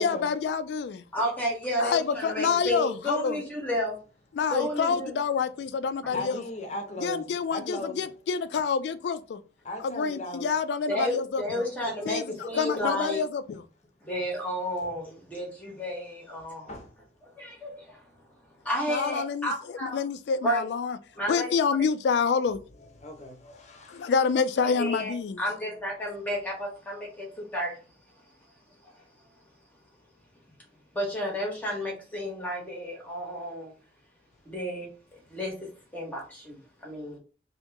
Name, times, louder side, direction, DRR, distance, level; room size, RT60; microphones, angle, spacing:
voice 1, 0.0-1.0 1.8-3.4 4.3-6.4 7.0-9.4 9.8-11.6 12.1-13.6 18.9-19.5 19.8-21.0 21.3-22.6 23.9-25.4, left 5 dB, 70° left, 0.3 m, -27 dB
voice 2, 1.1-4.0 4.5-5.1 10.9-13.2 14.0-16.7 17.4-18.0 18.6-20.0 20.4-20.6 21.2-21.5 24.6-27.7 30.9-33.7 34.5-34.9 35.3-35.5 35.9-37.2, equal, 10° left, 1.1 m, -31 dB
voice 3, 6.1-8.1 9.6-10.5 16.7-17.0 22.8-24.1, left 1 dB, 40° left, 0.7 m, -37 dB
2.9 x 2.7 x 3.3 m
head